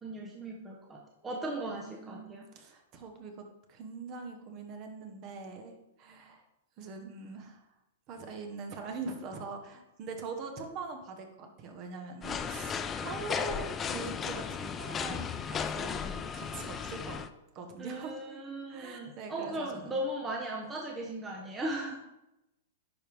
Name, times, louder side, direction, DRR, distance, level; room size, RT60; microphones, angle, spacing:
voice 1, 0.0-2.5 17.8-22.0, right 1 dB, 15° right, -1 dB, 0.9 m, -37 dB
voice 2, 1.7-2.3 2.5-3.4 3.7-6.4 6.8-7.6 8.1-17.2 17.5-18.2 18.7-20.0, right 4 dB, 35° right, 4 dB, 1.2 m, -42 dB
sound 1, 12.2-17.3, left 7 dB, 20° left, 0.4 m, -35 dB
10.5 x 4.6 x 3.5 m, 0.92 s
hypercardioid pair, 145°, 0 cm